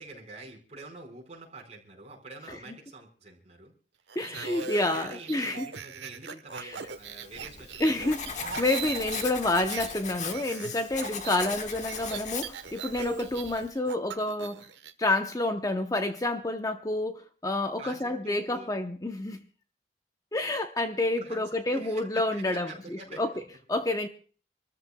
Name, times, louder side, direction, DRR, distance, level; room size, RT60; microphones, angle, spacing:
voice 1, 0.0-3.7 4.2-8.1 17.8-18.7 21.2-23.2 23.5-23.6, right 3 dB, 40° right, 1 dB, 4.7 m, -46 dB
sound 1, 4.1-9.9 10.2-14.9, right 6 dB, 85° right, 1.1 m, -40 dB
voice 2, 4.2-5.7 6.6-6.7 7.8-14.6 15.0-19.4 20.3-23.3 23.7-24.1, left 2 dB, 20° left, 6 dB, 0.7 m, -29 dB
Writing, 7.0-13.7, left 6 dB, 45° left, 1.2 m, -38 dB
27.5 x 13.5 x 2.3 m, 0.41 s
head